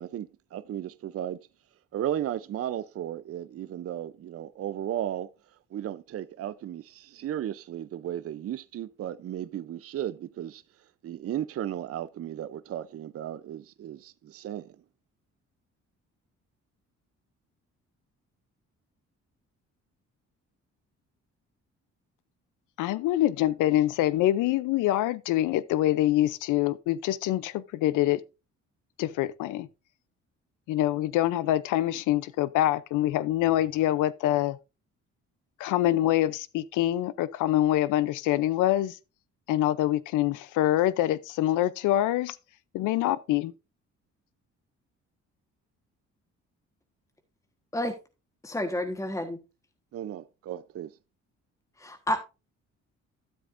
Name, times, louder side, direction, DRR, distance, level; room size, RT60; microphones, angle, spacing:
voice 1, 0.0-1.4 1.9-5.3 5.7-10.6 11.0-14.8 49.9-50.9, right 11 dB, 50° right, 0.6 m, -35 dB
voice 2, 22.8-28.2 29.0-29.7 30.7-34.6 35.6-39.0 39.5-42.4 42.7-43.5, left 14 dB, 90° left, 0.6 m, -25 dB
voice 3, 48.4-49.4 51.8-52.2, left 1 dB, 10° left, 1.3 m, -30 dB
12.5 x 7.7 x 2.6 m
cardioid pair, 90°, 30 cm